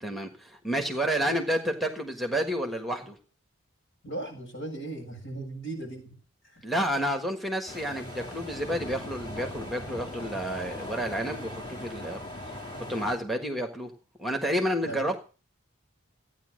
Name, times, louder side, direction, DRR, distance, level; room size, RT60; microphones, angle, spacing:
voice 1, 0.0-3.1 6.6-12.2 12.8-13.9 14.2-15.2, equal, ahead, 5 dB, 1.5 m, -30 dB
voice 2, 4.0-6.1 6.5-6.6 14.8-15.0, right 2 dB, 70° left, 0 dB, 7.4 m, -37 dB
sound 1, 7.7-13.2, left 1 dB, 20° left, 2.8 m, -39 dB
15.0 x 9.6 x 6.4 m, 0.37 s
head